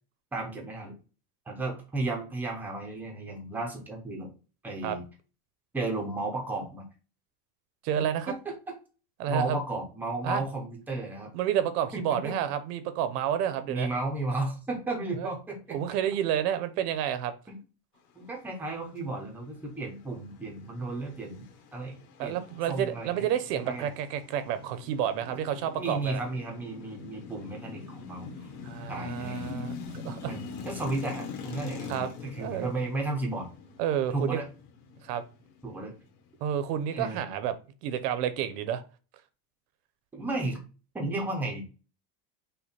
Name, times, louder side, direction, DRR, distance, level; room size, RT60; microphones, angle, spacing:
voice 1, 0.3-1.0 1.5-4.3 4.6-5.0 5.7-6.9 8.3-8.5 9.3-11.3 11.9-12.3 13.6-16.0 17.5-17.6 18.2-21.5 21.7-22.4 22.7-23.3 23.6-23.9 25.8-28.3 28.9-29.6 30.2-33.5 34.1-34.5 35.6-35.9 36.9-37.3 40.1-40.6 40.9-41.6, right 2 dB, 5° right, 0.4 m, -34 dB
voice 2, 7.8-8.3 9.2-9.6 10.2-10.4 11.3-13.9 15.2-15.3 15.7-17.3 22.2-26.2 28.6-29.7 30.0-30.4 31.9-32.1 32.4-32.7 33.8-34.4 35.0-35.2 36.4-37.6 37.8-38.8, right 10 dB, 80° right, 0.9 m, -30 dB
sound 1, 20.0-36.8, left 5 dB, 85° left, 1.6 m, -43 dB
5.6 x 2.1 x 4.1 m
cardioid pair, 175°, 46 cm